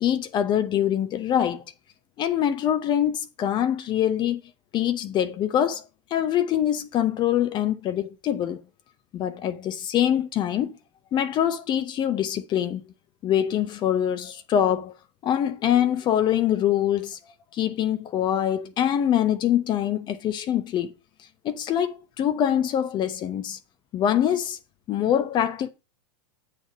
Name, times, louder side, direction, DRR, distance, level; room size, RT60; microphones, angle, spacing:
voice 1, 0.0-1.6 2.2-4.4 4.7-5.8 6.1-8.6 9.1-10.8 11.1-12.9 13.2-14.9 15.2-17.2 17.5-20.9 21.4-23.6 23.9-24.6 24.9-25.7, left 10 dB, 30° left, 0.7 m, -24 dB
7.8 x 4.2 x 6.1 m
supercardioid pair, 125°, 14 cm